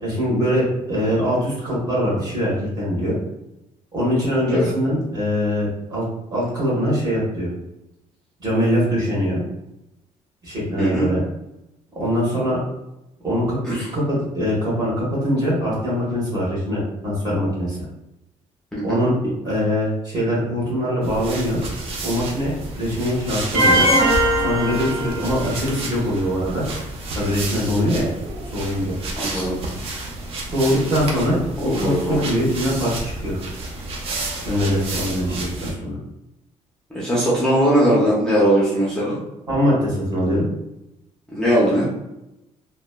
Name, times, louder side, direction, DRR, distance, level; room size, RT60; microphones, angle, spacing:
voice 1, 0.0-3.2 3.9-6.0 6.3-7.5 8.4-9.4 10.4-11.2 12.0-12.6 13.2-17.8 18.8-19.2 19.4-21.6 22.0-23.8 24.4-26.6 27.1-28.1 28.5-28.9 29.3-29.5 30.5-33.4 34.4-36.0 39.5-40.5, equal, 35° right, -6 dB, 1.2 m, -22 dB
voice 2, 10.8-11.1 13.6-13.9 18.7-19.0 25.0-25.2 27.9-28.0 29.2-29.6 31.6-32.2 35.3-35.4 36.9-39.2 41.3-41.9, equal, 5° left, -8 dB, 0.5 m, -20 dB
sound 1, 21.0-35.7, right 2 dB, 50° right, 0.5 m, -31 dB
sound 2, 23.5-25.6, right 1 dB, 90° right, 1.0 m, -19 dB
2.9 x 2.2 x 2.2 m, 0.91 s
cardioid pair, 160°, 13 cm